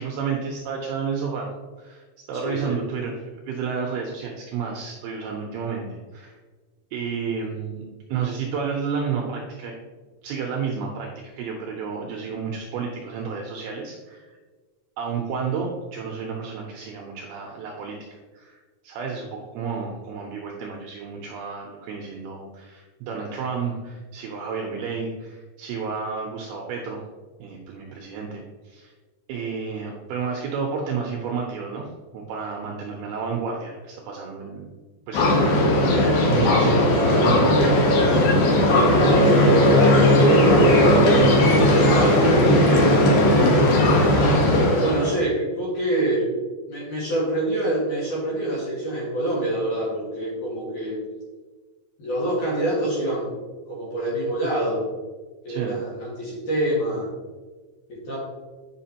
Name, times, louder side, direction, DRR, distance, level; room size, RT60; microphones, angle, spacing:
voice 1, 0.0-1.5 1.8-6.3 6.9-9.8 10.2-11.1 11.4-14.4 15.0-27.0 27.4-28.9 29.3-31.9 32.1-34.7 35.1-37.8 55.5-55.8, right 5 dB, 80° right, 0 dB, 2.3 m, -31 dB
voice 2, 2.4-2.8 38.6-39.7 40.2-43.0 43.8-44.4 44.8-46.3 46.7-51.0 52.0-53.3 53.7-54.9 55.4-57.1 57.9-58.2, right 1 dB, 55° left, -6 dB, 2.4 m, -26 dB
sound 1, 35.1-45.2, left 1 dB, 75° left, 1.9 m, -17 dB
8.5 x 5.9 x 2.8 m, 1.3 s
omnidirectional pair, 5.3 m